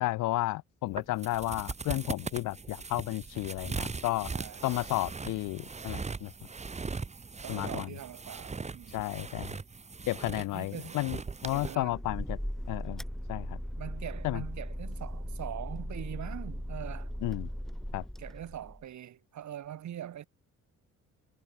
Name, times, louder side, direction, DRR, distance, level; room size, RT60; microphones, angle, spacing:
voice 1, 0.0-4.3 4.6-6.3 7.5-7.9 8.9-9.6 10.1-12.4 12.7-13.0 13.3-13.6 14.2-14.4 17.2-17.5 17.9-18.0, left 18 dB, 85° left, 0.6 m, -32 dB
sound 1, 0.9-11.8, right 4 dB, 20° right, 1.2 m, -39 dB
voice 2, 4.3-4.7 7.4-9.0 10.5-11.0 11.5-12.0 13.8-17.1 18.2-20.3, right 11 dB, 70° right, 5.0 m, -42 dB
sound 2, 11.5-18.8, equal, ahead, 2.9 m, -38 dB
cardioid pair, 90°, 30 cm